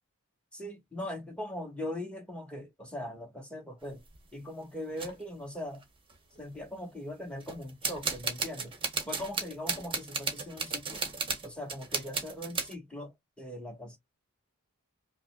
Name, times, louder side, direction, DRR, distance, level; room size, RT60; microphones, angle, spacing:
voice 1, 0.5-4.0 4.3-5.8 6.4-8.7 9.0-11.0 11.4-13.1 13.4-14.0, left 1 dB, 5° left, 1.6 m, -40 dB
sound 1, 3.8-4.2 5.0-5.1 5.8-5.9 6.1-6.6 7.4-12.7, right 4 dB, 25° right, 1.0 m, -35 dB
5.3 x 2.1 x 2.4 m
head